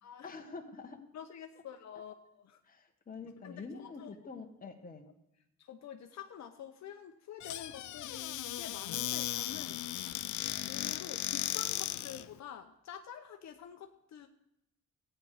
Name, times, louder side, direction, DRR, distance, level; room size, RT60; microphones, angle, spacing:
voice 1, 0.2-1.0 2.6-5.1, left 4 dB, 30° left, 3 dB, 1.6 m, -46 dB
voice 2, 1.1-2.6 3.4-4.1 5.7-10.2 10.7-14.3, left 8 dB, 65° left, 5 dB, 0.9 m, -48 dB
Squeak / Cupboard open or close, 7.4-12.3, left 14 dB, 85° left, 0.6 m, -36 dB
14.0 x 9.2 x 4.9 m, 0.83 s
cardioid pair, 115°, 29 cm